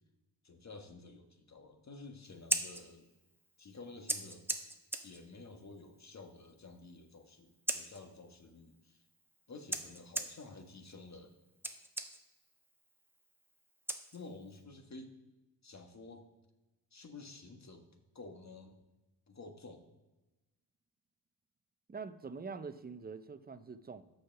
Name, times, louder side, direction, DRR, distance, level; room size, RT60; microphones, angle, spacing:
voice 1, 0.4-3.1 3.6-4.7 5.0-9.0 9.5-11.3 14.1-15.1 15.6-16.3 16.9-18.8 19.3-19.8, left 3 dB, 35° left, 6 dB, 1.5 m, -51 dB
Scissors, 2.2-14.6, right 1 dB, 5° right, 1.1 m, -43 dB
voice 2, 21.9-24.1, right 5 dB, 20° right, 12 dB, 0.7 m, -45 dB
6.4 x 5.7 x 5.8 m, 1.1 s
hypercardioid pair, 45°, 47 cm